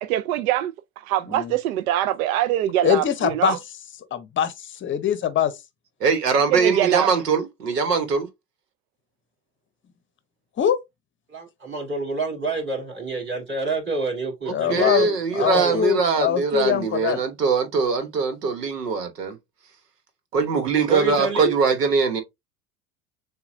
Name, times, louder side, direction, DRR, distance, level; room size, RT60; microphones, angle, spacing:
voice 1, 0.0-3.6 6.5-7.1, right 13 dB, 65° right, 0.5 m, -23 dB
voice 2, 2.8-3.6 4.1-5.5 10.6-10.8 14.5-17.2, left 10 dB, 25° left, 0.8 m, -23 dB
voice 3, 6.0-8.3 14.5-19.4 20.3-22.2, right 5 dB, 85° right, 1.1 m, -22 dB
voice 4, 11.3-15.8 20.9-21.5, right 3 dB, 25° right, 2.4 m, -28 dB
6.9 x 2.4 x 2.5 m
hypercardioid pair, 80°, 46 cm